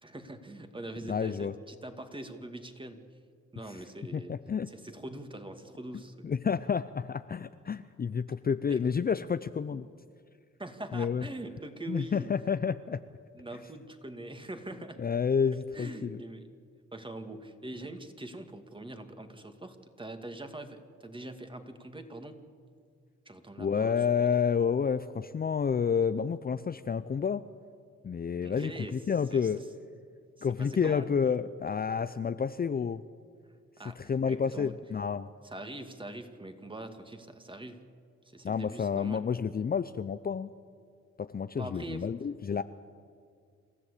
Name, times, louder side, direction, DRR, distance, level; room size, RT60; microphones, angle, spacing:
voice 1, 0.0-3.1 3.5-4.3 4.7-6.3 8.7-9.0 9.7-9.8 10.6-12.3 13.3-15.0 15.7-16.5 16.9-22.4 23.3-24.3 28.4-29.0 29.3-29.7 30.4-31.1 33.8-34.7 35.4-37.9 38.2-39.2 41.6-42.1, right 1 dB, 15° right, 7 dB, 2.3 m, -43 dB
voice 2, 1.1-1.5 4.1-4.7 6.2-9.9 10.9-11.2 11.9-13.0 15.0-16.2 23.6-27.4 28.0-29.6 30.4-33.0 34.0-35.3 38.4-40.5 41.2-42.6, left 6 dB, 30° left, 12 dB, 0.6 m, -30 dB
27.5 x 14.0 x 8.4 m, 2.2 s
cardioid pair, 70°, 29 cm